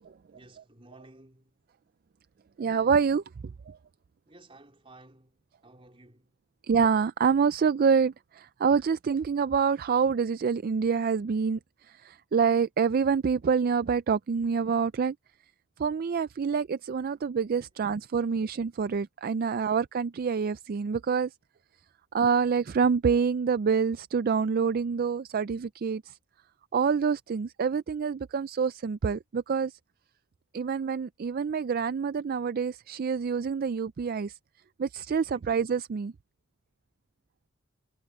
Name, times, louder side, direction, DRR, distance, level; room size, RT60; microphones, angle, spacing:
voice 1, 0.3-1.6 4.3-6.4 17.5-18.1 35.1-35.5, right 2 dB, 25° right, 4.0 m, -56 dB
voice 2, 2.6-3.2 3.7-3.8 6.7-11.6 11.9-15.1 15.8-21.3 22.1-26.1 26.7-29.8 30.5-34.4 34.8-36.1, right 6 dB, 40° right, 0.3 m, -26 dB
head